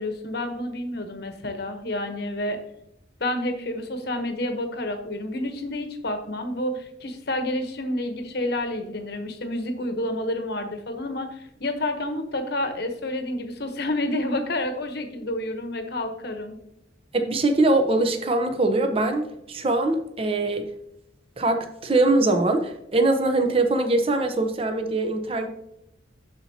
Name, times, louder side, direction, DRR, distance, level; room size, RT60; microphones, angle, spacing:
voice 1, 0.0-2.6 3.2-16.6, left 1 dB, 55° left, 6 dB, 1.0 m, -29 dB
voice 2, 17.1-20.7 21.4-25.5, right 2 dB, 30° right, 5 dB, 0.7 m, -22 dB
11.5 x 4.2 x 2.8 m, 0.80 s
head